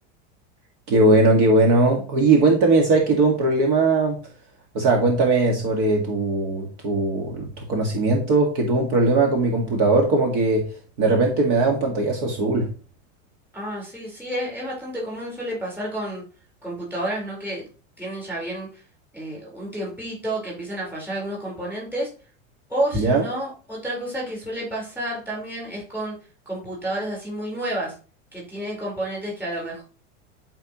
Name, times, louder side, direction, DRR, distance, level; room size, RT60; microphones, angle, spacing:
voice 1, 0.9-4.2 4.7-10.7 11.0-12.7 22.9-23.2, right 2 dB, 45° right, 1 dB, 1.9 m, -19 dB
voice 2, 13.5-16.2 16.6-17.7 18.0-18.8 19.1-22.1 22.7-26.1 26.5-27.9 28.3-29.8, right 1 dB, 5° right, -4 dB, 4.3 m, -30 dB
12.5 x 4.6 x 3.0 m, 0.37 s
supercardioid pair, 165°, 37 cm